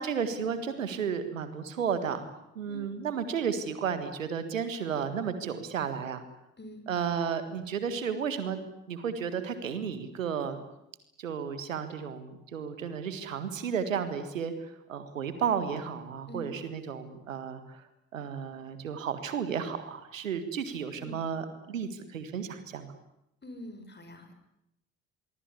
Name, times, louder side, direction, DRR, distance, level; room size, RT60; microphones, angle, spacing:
voice 1, 0.0-2.3 2.6-6.2 6.9-8.6 8.9-10.6 11.2-17.8 18.1-22.9, right 7 dB, 80° right, 11 dB, 1.8 m, -33 dB
voice 2, 23.4-24.3, left 1 dB, 25° left, 8 dB, 6.3 m, -45 dB
25.5 x 23.0 x 8.4 m, 0.84 s
figure-of-eight pair, 45°, 39 cm